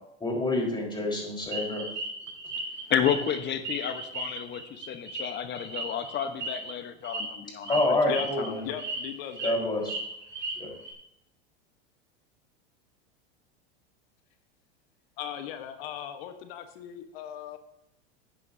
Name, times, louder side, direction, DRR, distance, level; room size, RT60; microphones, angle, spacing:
voice 1, 0.2-1.9 7.7-8.6 9.4-9.9 10.6-10.7, left 2 dB, 15° left, -1 dB, 4.2 m, -27 dB
sound 1, 1.5-3.4 3.6-6.7 7.0-7.3 7.6-7.8 8.2-8.5 8.8-9.5 9.8-10.9, right 2 dB, 35° right, 2.9 m, -35 dB
voice 2, 2.9-8.0 8.4-8.5, left 8 dB, 35° left, 9 dB, 1.1 m, -31 dB
voice 3, 8.6-9.6 15.2-17.6, left 10 dB, 65° left, 8 dB, 1.2 m, -37 dB
13.0 x 8.4 x 2.7 m, 0.83 s
hypercardioid pair, 100°, 32 cm